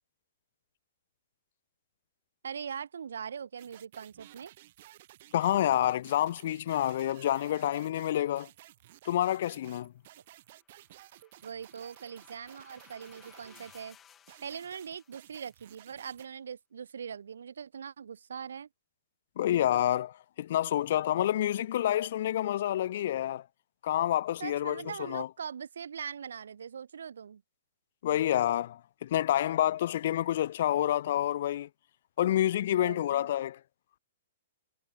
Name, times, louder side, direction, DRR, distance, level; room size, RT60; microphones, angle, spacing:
voice 1, 2.4-4.5 11.4-14.0 14.4-18.7 24.4-27.4 32.7-33.3, right 7 dB, 85° right, 1.1 m, -41 dB
sound 1, 3.6-13.9 14.3-16.3, right 15 dB, 50° right, 1.5 m, -55 dB
voice 2, 5.3-8.5 9.0-9.9 19.4-23.4 23.8-25.3 28.0-31.7 32.2-33.6, left 12 dB, 55° left, 0.5 m, -28 dB
sound 2, 10.4-15.7, left 9 dB, 15° left, 2.3 m, -60 dB
hypercardioid pair, 150°, 0 cm